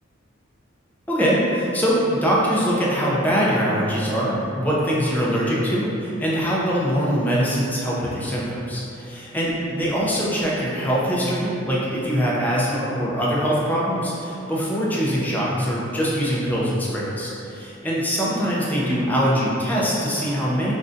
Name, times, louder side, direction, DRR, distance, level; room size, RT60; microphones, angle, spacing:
voice 1, 1.1-20.7, equal, 10° left, -6 dB, 0.4 m, -23 dB
2.5 x 2.2 x 3.6 m, 2.8 s
head